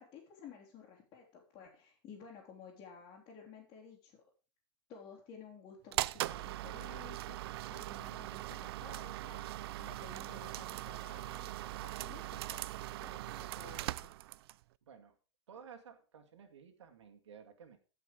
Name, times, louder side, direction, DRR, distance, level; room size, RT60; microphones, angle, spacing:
voice 1, 0.0-4.2 4.9-14.1, left 6 dB, 30° left, -5 dB, 3.1 m, -54 dB
sound 1, 5.9-14.6, right 16 dB, 60° right, 0.4 m, -40 dB
voice 2, 14.8-15.2 15.5-17.8, right 7 dB, 90° right, 5 dB, 2.2 m, -54 dB
14.0 x 5.8 x 5.0 m, 0.34 s
hypercardioid pair, 140°, 14 cm